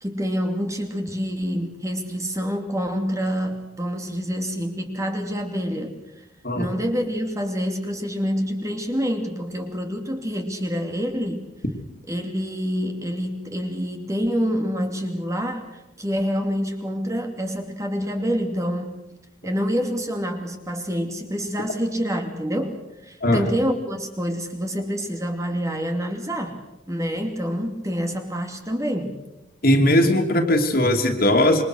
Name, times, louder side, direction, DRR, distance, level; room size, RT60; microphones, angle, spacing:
voice 1, 0.0-5.9 6.5-11.4 12.1-19.0 19.4-26.6 26.9-29.2, equal, 15° right, 4 dB, 2.7 m, -27 dB
voice 2, 29.6-31.6, left 1 dB, 50° left, 4 dB, 3.1 m, -19 dB
27.0 x 24.5 x 6.5 m, 0.91 s
head